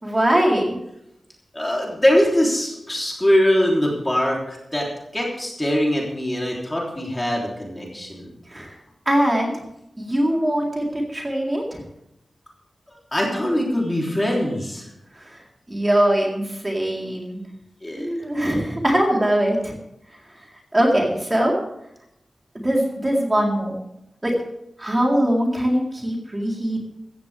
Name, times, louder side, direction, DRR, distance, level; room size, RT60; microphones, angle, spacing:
voice 1, 0.0-0.8 8.5-8.7 9.1-9.6 10.0-11.8 15.1-15.4 15.7-17.4 17.9-19.7 20.7-21.5 22.6-23.8 24.2-24.3 24.8-26.8, right 1 dB, 20° right, -2 dB, 3.9 m, -21 dB
voice 2, 1.5-4.9 5.1-8.2 13.1-14.9 17.8-18.1, equal, 15° left, -2 dB, 3.4 m, -22 dB
15.5 x 15.5 x 3.5 m, 0.81 s
wide cardioid pair, 100°, 0 cm